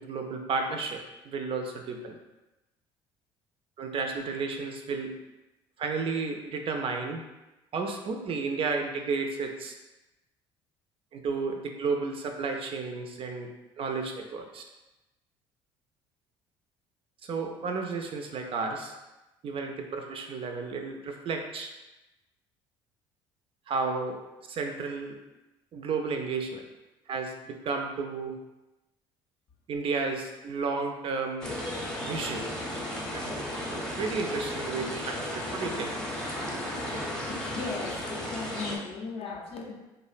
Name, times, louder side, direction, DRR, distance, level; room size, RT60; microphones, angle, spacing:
voice 1, 0.0-2.2 3.8-5.1 5.8-7.2 7.7-9.7 11.1-13.5 13.8-14.6 17.2-18.9 19.4-21.7 23.7-24.2 24.5-25.2 25.7-26.7 27.1-28.4 29.7-31.5 32.0-32.4 33.1-35.9, right 4 dB, 45° right, 3 dB, 0.4 m, -32 dB
sound 1, 31.4-38.8, left 1 dB, 5° left, 0.6 m, -34 dB
voice 2, 37.3-39.7, left 4 dB, 45° left, 1 dB, 0.5 m, -37 dB
2.6 x 2.0 x 2.4 m, 1.0 s
hypercardioid pair, 65°, 13 cm